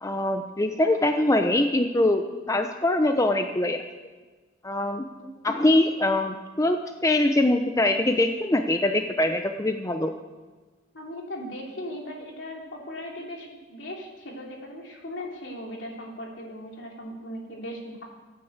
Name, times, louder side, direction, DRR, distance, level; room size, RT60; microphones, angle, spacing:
voice 1, 0.0-3.8 4.6-5.1 5.4-10.1, left 1 dB, 15° left, 6 dB, 0.7 m, -23 dB
voice 2, 10.9-18.0, equal, 70° left, 0 dB, 3.2 m, -38 dB
15.5 x 9.1 x 8.0 m, 1.3 s
head